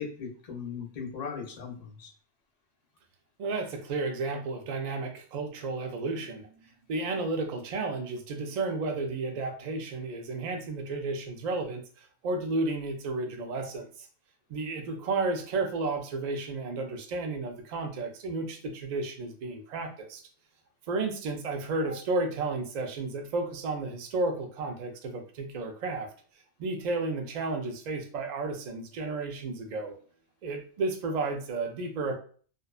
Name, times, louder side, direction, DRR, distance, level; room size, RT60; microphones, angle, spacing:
voice 1, 0.0-2.1, left 6 dB, 40° left, 0 dB, 0.6 m, -38 dB
voice 2, 3.4-6.5 6.9-14.1 14.5-20.2 20.9-26.1 26.6-30.0 30.4-32.2, right 3 dB, 60° right, 4 dB, 0.4 m, -32 dB
2.6 x 2.2 x 2.3 m, 0.43 s
omnidirectional pair, 1.3 m